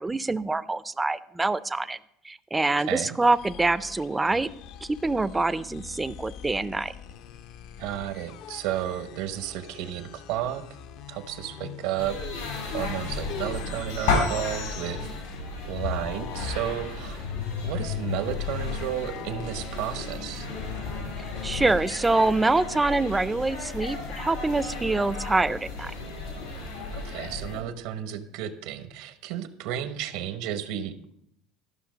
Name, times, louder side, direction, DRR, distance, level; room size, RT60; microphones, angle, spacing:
voice 1, 0.0-2.0 2.3-4.5 4.8-6.9 21.4-25.9, right 3 dB, 10° right, 15 dB, 0.4 m, -25 dB
voice 2, 2.8-3.2 7.8-10.6 11.1-12.2 12.7-15.1 15.7-17.2 17.6-20.5 26.9-31.0, right 11 dB, 75° right, 10 dB, 0.9 m, -32 dB
sound 1, 3.2-15.5 15.7-21.8, left 7 dB, 60° left, 0.6 m, -38 dB
sound 2, 12.0-27.6, left 3 dB, 90° left, 4.6 m, -34 dB
13.0 x 5.9 x 5.1 m, 0.75 s
cardioid pair, 135°, 0 cm